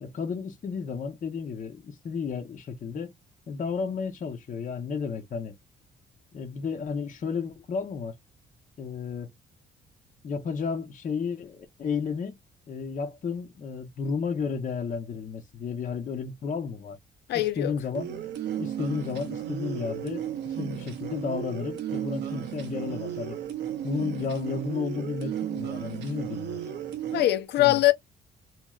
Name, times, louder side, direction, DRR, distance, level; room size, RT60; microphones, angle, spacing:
voice 1, 0.0-3.1 3.5-5.5 6.3-8.1 8.8-9.3 10.2-12.4 12.7-17.0 17.3-18.1 18.6-23.4 23.8-26.6 27.6-27.8, left 5 dB, 45° left, 0.8 m, -32 dB
voice 2, 17.3-17.7 27.1-27.9, left 15 dB, 75° left, 0.7 m, -22 dB
sound 1, 18.0-27.3, right 10 dB, 80° right, 0.9 m, -34 dB
3.0 x 3.0 x 2.3 m
cardioid pair, 100°, 18 cm